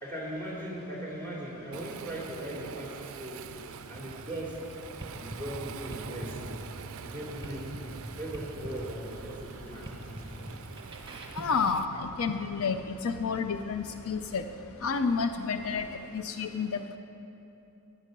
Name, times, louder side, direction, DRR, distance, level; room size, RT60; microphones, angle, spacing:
voice 1, 0.0-3.5 3.9-4.6 5.1-10.5, right 1 dB, 10° left, -5 dB, 2.9 m, -39 dB
Waves surf, 1.7-11.9, right 7 dB, 65° right, 0.4 m, -45 dB
sound 1, 3.9-12.8, right 1 dB, 20° right, 1.4 m, -44 dB
sound 2, 4.4-15.9, equal, 35° left, 1.8 m, -52 dB
voice 2, 11.4-14.4 14.8-17.0, left 5 dB, 70° left, 8 dB, 0.5 m, -30 dB
14.5 x 10.5 x 5.3 m, 3.0 s
head